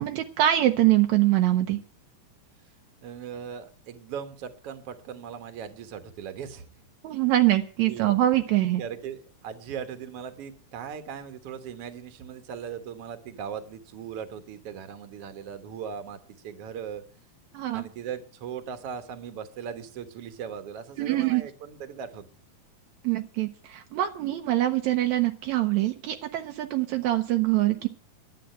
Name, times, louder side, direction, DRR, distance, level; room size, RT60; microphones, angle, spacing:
voice 1, 0.0-1.8 7.0-8.8 17.5-17.8 21.0-21.4 23.0-27.9, right 14 dB, 80° right, 6 dB, 1.6 m, -24 dB
voice 2, 3.0-6.7 7.9-8.1 8.8-17.0 17.7-22.3, right 7 dB, 55° right, 9 dB, 1.7 m, -38 dB
11.5 x 8.8 x 8.9 m, 0.44 s
omnidirectional pair, 4.1 m